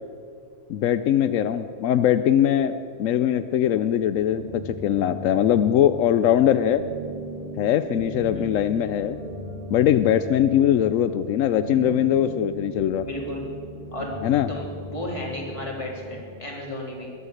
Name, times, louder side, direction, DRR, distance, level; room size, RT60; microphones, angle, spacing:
voice 1, 0.7-2.7 3.0-6.8 7.6-9.2 9.7-13.1 14.2-14.5, left 10 dB, 85° left, 11 dB, 1.0 m, -21 dB
sound 1, 4.1-16.3, right 1 dB, 50° right, 2.7 m, -38 dB
voice 2, 13.0-13.5 13.9-14.1 14.5-17.1, left 1 dB, 25° left, -2 dB, 3.3 m, -33 dB
21.0 x 8.3 x 7.8 m, 2.4 s
omnidirectional pair, 1.3 m